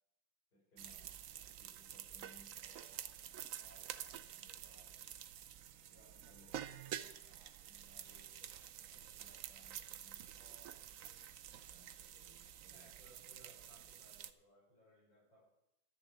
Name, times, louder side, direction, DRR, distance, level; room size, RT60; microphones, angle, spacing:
voice 1, 0.5-1.1 1.6-5.1 5.9-11.8 12.1-13.3, equal, 55° left, -4 dB, 6.1 m, -67 dB
sound 1, 0.8-14.3, right 10 dB, 75° right, 0.7 m, -50 dB
voice 2, 12.7-15.5, right 1 dB, 70° left, -6 dB, 5.9 m, -65 dB
12.5 x 7.1 x 7.9 m, 0.84 s
omnidirectional pair, 2.1 m